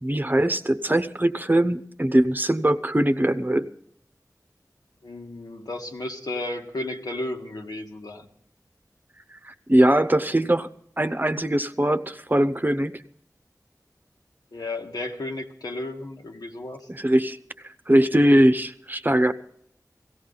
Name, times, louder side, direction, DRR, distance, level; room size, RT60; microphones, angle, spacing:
voice 1, 0.0-3.7 9.4-10.7 11.0-13.0 16.9-17.4 17.9-19.3, right 1 dB, 30° right, 11 dB, 0.9 m, -21 dB
voice 2, 5.0-8.3 14.5-16.9, left 2 dB, 85° left, 1 dB, 1.8 m, -33 dB
17.5 x 16.0 x 4.0 m, 0.69 s
wide cardioid pair, 50°, 7 cm